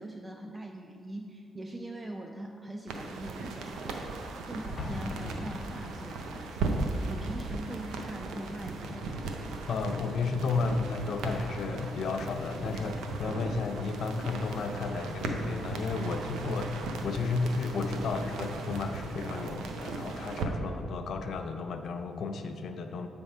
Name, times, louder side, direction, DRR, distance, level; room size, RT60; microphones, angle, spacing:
voice 1, 0.0-9.3, right 1 dB, 15° right, 4 dB, 0.4 m, -42 dB
sound 1, 2.9-20.5, right 3 dB, 85° right, 0.6 m, -37 dB
Explosion, 4.8-6.4, left 2 dB, 45° left, 0.8 m, -39 dB
voice 2, 9.7-23.1, left 4 dB, 65° left, 7 dB, 0.5 m, -33 dB
7.8 x 3.5 x 5.4 m, 2.4 s
cardioid pair, 80°, 0 cm